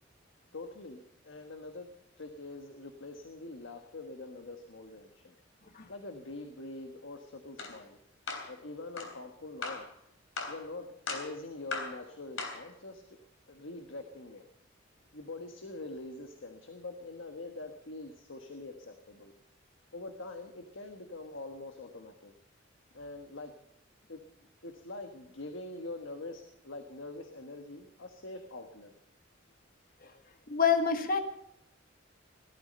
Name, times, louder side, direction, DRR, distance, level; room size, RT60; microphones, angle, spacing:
voice 1, 0.5-1.9 2.2-5.3 5.9-8.0 8.5-9.8 10.5-13.2 13.5-14.4 15.1-19.3 19.9-22.3 22.9-23.5 24.1-24.2 24.6-28.9, left 2 dB, 75° left, 6 dB, 1.4 m, -44 dB
sound 1, 7.6-7.8 8.3-8.5 9.0-9.1 9.6-9.9 10.4-10.6 11.1-11.3 11.7-12.0 12.4-12.7, left 4 dB, 90° left, 3.5 m, -37 dB
voice 2, 30.5-31.2, left 6 dB, 50° left, 6 dB, 1.5 m, -27 dB
17.5 x 12.5 x 5.5 m, 0.81 s
head